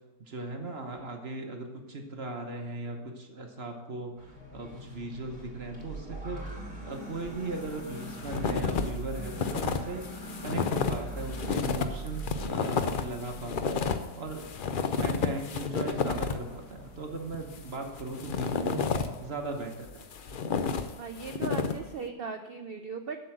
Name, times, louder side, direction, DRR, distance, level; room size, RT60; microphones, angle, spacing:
voice 1, 0.2-6.4 6.8-10.0 10.4-14.5 15.0-20.4, right 2 dB, 40° right, 3 dB, 1.2 m, -38 dB
sound 1, 4.2-19.4, right 1 dB, 5° right, 2.9 m, -43 dB
sound 2, 7.6-8.9 9.2-16.5 17.3-19.2 19.7-21.9, left 5 dB, 75° left, 0.4 m, -31 dB
voice 2, 21.0-23.3, right 5 dB, 80° right, 6 dB, 0.5 m, -38 dB
7.6 x 6.8 x 7.6 m, 1.2 s
omnidirectional pair, 1.8 m